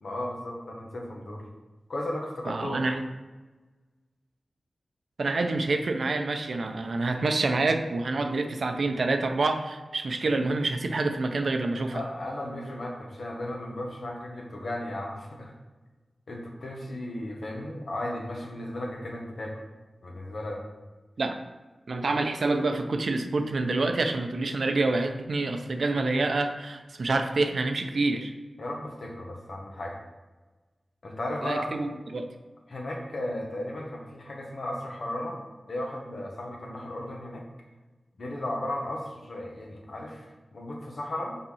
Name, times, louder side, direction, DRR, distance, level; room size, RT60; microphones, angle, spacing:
voice 1, 0.0-1.5 1.9-2.8 11.9-15.5 16.3-19.6 20.0-20.6 28.6-30.0 31.0-31.8 32.7-35.4 35.7-37.4 38.2-41.3, left 1 dB, 75° left, -1 dB, 1.3 m, -35 dB
voice 2, 2.4-3.1 5.2-12.0 21.2-21.4 21.9-28.3 31.4-32.3, right 3 dB, 75° right, 6 dB, 0.6 m, -27 dB
5.5 x 4.1 x 5.6 m, 1.2 s
wide cardioid pair, 85°, 0 cm